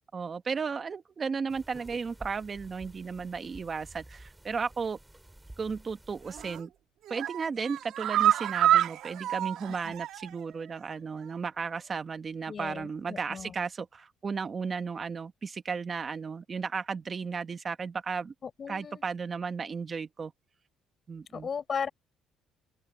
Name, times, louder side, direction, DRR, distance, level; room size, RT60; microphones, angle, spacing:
voice 1, 0.1-5.0 5.6-6.7 7.1-18.3 18.7-20.3 21.1-21.5, right 5 dB, 30° right, 1.6 m, -34 dB
sound 1, 1.5-6.6, right 1 dB, 5° right, 4.2 m, -51 dB
sound 2, 6.3-6.6 7.0-10.4 10.7-10.8 11.2-11.3, right 12 dB, 65° right, 1.8 m, -28 dB
voice 2, 12.5-13.5 18.4-19.0 21.3-21.9, left 6 dB, 35° left, 5.6 m, -36 dB
open air
cardioid pair, 140°, 0 cm